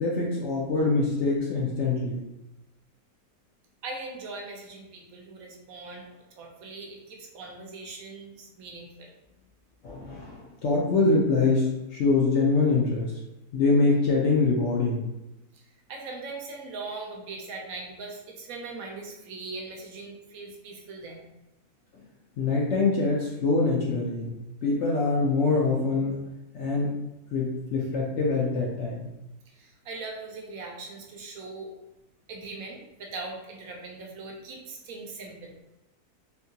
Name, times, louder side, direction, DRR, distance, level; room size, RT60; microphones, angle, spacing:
voice 1, 0.0-2.3 9.8-13.1 13.5-15.0 22.4-24.3 24.6-26.2 26.5-26.9 27.3-29.1, left 3 dB, 65° left, -4 dB, 0.7 m, -24 dB
voice 2, 3.8-6.1 6.4-9.1 15.5-15.6 15.9-21.2 29.5-31.7 32.3-35.5, right 3 dB, 70° right, 0 dB, 1.0 m, -40 dB
3.6 x 2.7 x 2.7 m, 0.97 s
omnidirectional pair, 1.6 m